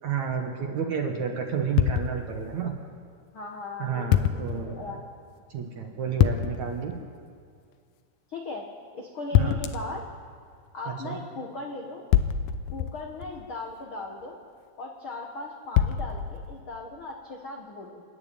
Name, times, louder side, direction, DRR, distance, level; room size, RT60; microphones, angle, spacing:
voice 1, 0.0-2.7 3.8-5.0 5.5-7.0 9.4-9.6 10.9-11.2, right 6 dB, 60° right, 2 dB, 2.2 m, -31 dB
sound 1, 1.8-2.5 4.1-4.7 6.2-6.8 9.3-10.0 12.1-13.5 15.8-16.6, left 10 dB, 85° left, 1.9 m, -25 dB
voice 2, 3.3-5.0 8.3-8.7 8.9-10.0 10.7-12.0 12.7-14.4 14.8-18.0, left 3 dB, 65° left, 1 dB, 1.3 m, -38 dB
28.0 x 11.0 x 8.8 m, 2.1 s
omnidirectional pair, 4.6 m